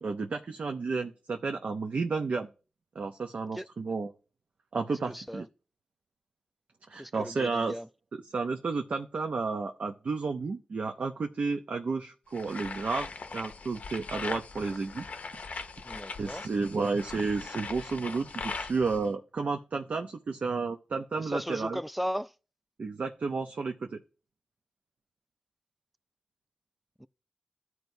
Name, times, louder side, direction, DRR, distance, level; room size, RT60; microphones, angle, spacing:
voice 1, 0.0-2.5 3.0-4.1 4.7-5.5 6.9-7.8 8.3-15.0 16.2-21.8 22.8-24.0, right 4 dB, 75° right, 0.6 m, -32 dB
voice 2, 4.9-5.5 7.0-7.9 15.8-16.4 21.2-22.3 27.0-27.1, equal, 5° right, 0.3 m, -36 dB
sound 1, 12.3-19.1, left 4 dB, 70° left, 0.6 m, -40 dB
14.0 x 4.6 x 2.7 m
cardioid pair, 60°, 3 cm